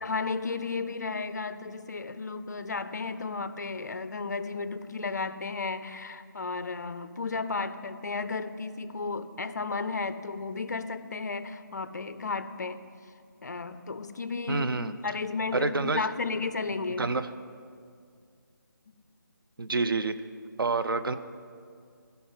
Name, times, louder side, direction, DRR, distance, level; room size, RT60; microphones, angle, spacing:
voice 1, 0.0-12.8 13.4-17.1, left 4 dB, 50° left, 12 dB, 0.6 m, -33 dB
voice 2, 14.5-14.9 15.5-16.0 17.0-17.3 19.6-20.1 20.6-21.2, right 3 dB, 80° right, 10 dB, 0.8 m, -27 dB
16.0 x 5.7 x 9.3 m, 2.2 s
figure-of-eight pair, 170°, 11 cm